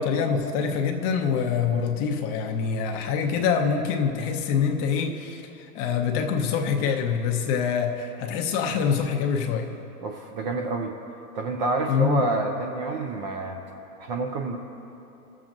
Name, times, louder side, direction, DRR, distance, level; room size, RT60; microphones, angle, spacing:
voice 1, 0.0-9.7 11.9-12.3, left 6 dB, 30° left, 5 dB, 0.6 m, -25 dB
voice 2, 10.0-10.9 11.3-13.6 14.0-14.6, right 3 dB, 30° right, 3 dB, 0.4 m, -28 dB
21.0 x 7.4 x 2.6 m, 3.0 s
hypercardioid pair, 130°, 48 cm